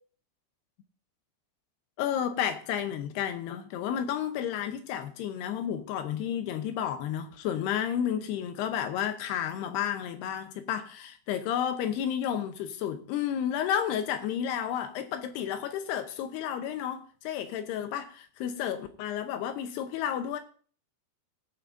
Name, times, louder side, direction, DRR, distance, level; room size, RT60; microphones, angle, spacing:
voice 1, 2.0-20.4, left 9 dB, 75° left, 2.6 m, -31 dB
21.0 x 8.7 x 2.6 m
omnidirectional pair, 5.4 m